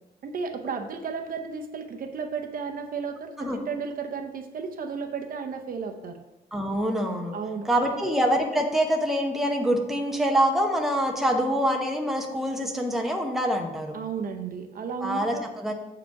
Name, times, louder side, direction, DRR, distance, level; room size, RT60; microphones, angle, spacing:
voice 1, 0.2-6.2 7.3-8.0 13.9-15.4, right 5 dB, 60° right, 5 dB, 0.7 m, -33 dB
voice 2, 6.5-7.3 7.7-13.9 15.0-15.7, equal, ahead, 1 dB, 0.8 m, -25 dB
7.7 x 4.8 x 4.7 m, 0.99 s
wide cardioid pair, 165°, 17 cm